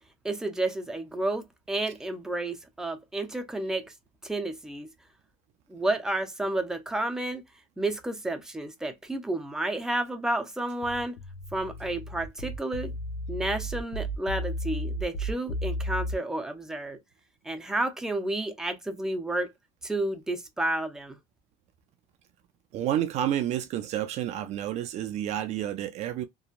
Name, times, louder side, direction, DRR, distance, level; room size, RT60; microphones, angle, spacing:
voice 1, 0.2-3.9 4.2-4.9 5.7-7.4 7.8-11.2 11.5-12.9 13.3-17.0 17.4-19.5 19.8-21.2, right 2 dB, 5° right, 0.6 m, -31 dB
sound 1, 10.8-16.2, equal, 70° left, 0.7 m, -33 dB
voice 2, 22.7-26.2, right 11 dB, 50° right, 0.4 m, -30 dB
2.9 x 2.2 x 2.4 m
cardioid pair, 120°, 14 cm